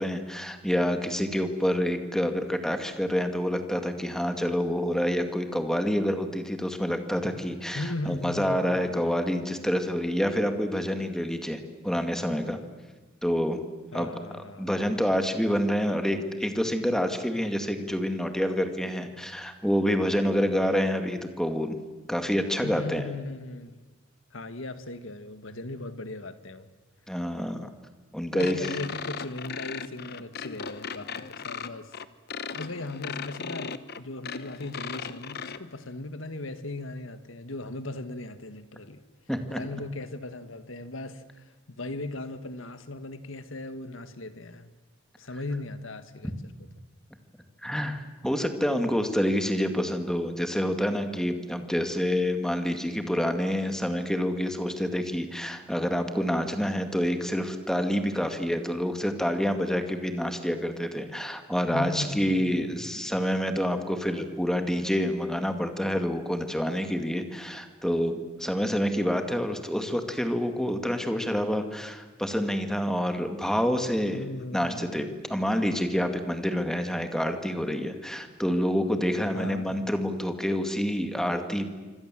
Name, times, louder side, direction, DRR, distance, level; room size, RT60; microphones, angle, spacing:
voice 1, 0.0-12.6 13.2-13.6 13.9-14.1 14.6-21.8 22.1-23.0 27.1-27.7 28.1-28.5 39.3-39.6 47.6-74.2 74.5-81.7, equal, 5° left, 2.2 m, -27 dB
voice 2, 7.7-9.1 13.9-15.0 22.6-23.8 24.3-26.7 28.3-31.9 32.5-39.0 39.5-44.7 45.2-46.4 61.7-63.2 74.1-75.1 79.3-79.7, left 2 dB, 75° left, 1.8 m, -38 dB
sound 1, 28.4-35.6, left 6 dB, 50° left, 1.0 m, -37 dB
27.0 x 25.0 x 7.7 m
head